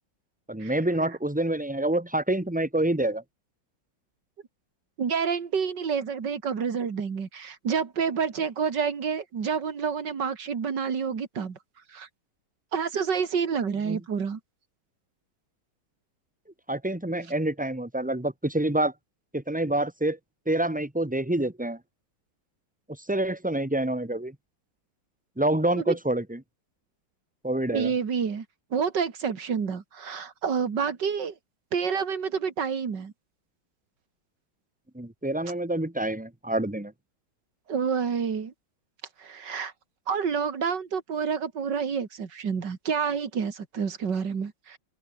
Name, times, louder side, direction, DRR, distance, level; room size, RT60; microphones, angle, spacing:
voice 1, 0.5-3.2 13.9-14.0 16.7-18.9 19.3-20.2 20.4-21.8 23.1-24.3 25.4-26.4 27.4-27.9 34.9-36.9, right 1 dB, 5° right, 1.7 m, -27 dB
voice 2, 5.0-11.6 11.9-12.1 12.7-14.4 25.8-25.9 27.7-28.4 28.7-31.3 31.7-33.1 37.7-38.5 39.2-39.7 40.1-44.8, right 6 dB, 60° right, 2.8 m, -28 dB
open air
omnidirectional pair, 2.2 m